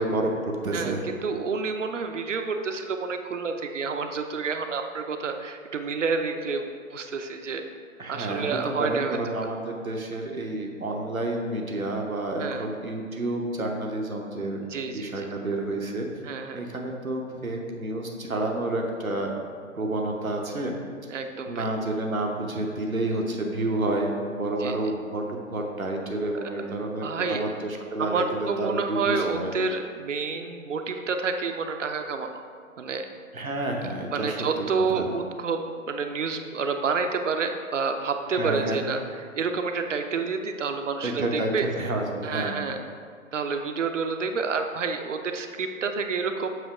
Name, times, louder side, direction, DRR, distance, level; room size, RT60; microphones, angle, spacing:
voice 1, 0.0-1.2 8.0-16.1 16.5-19.4 19.7-20.7 21.5-29.5 33.3-34.7 34.9-35.1 38.3-38.8 41.0-42.5, right 2 dB, 90° right, 1 dB, 0.9 m, -29 dB
voice 2, 0.7-6.6 6.9-7.6 8.1-9.2 12.4-12.6 14.7-15.3 16.2-16.6 21.1-21.7 24.6-24.8 26.6-26.7 27.0-27.4 28.0-32.4 32.8-33.1 34.1-39.0 39.3-41.7 42.2-42.8 43.3-46.5, right 5 dB, 65° right, 6 dB, 0.6 m, -29 dB
7.9 x 2.8 x 4.8 m, 2.1 s
figure-of-eight pair, 130°, 40 cm